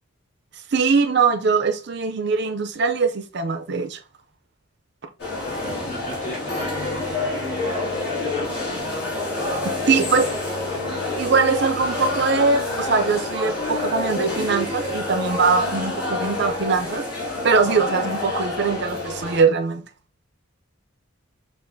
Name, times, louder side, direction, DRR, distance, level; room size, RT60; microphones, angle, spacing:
voice 1, 0.7-4.0 9.6-10.3 11.2-17.1 17.4-19.9, right 4 dB, 50° right, 0.5 m, -21 dB
sound 1, 5.2-19.4, left 2 dB, 50° left, 2.0 m, -27 dB
voice 2, 5.4-8.9 9.9-11.1, left 1 dB, 30° left, 1.6 m, -38 dB
6.4 x 2.5 x 2.6 m
head